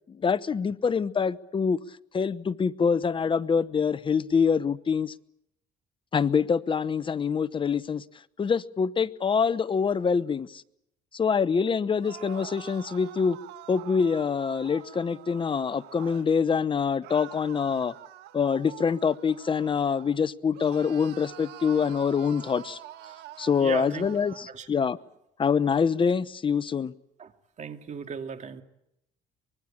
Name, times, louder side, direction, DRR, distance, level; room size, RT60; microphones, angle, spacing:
voice 1, 0.1-1.8 2.1-5.1 6.1-8.0 8.4-10.6 11.1-13.4 13.7-17.9 18.3-22.8 23.4-25.0 25.4-26.9, left 6 dB, 30° left, 0.9 m, -25 dB
sound 1, 11.9-16.3 17.0-20.2 20.5-24.5, right 14 dB, 85° right, 1.7 m, -46 dB
voice 2, 23.6-24.1 24.5-24.7 27.2-27.3 27.6-28.6, right 6 dB, 45° right, 2.5 m, -36 dB
24.5 x 21.5 x 8.6 m
cardioid pair, 110°, 17 cm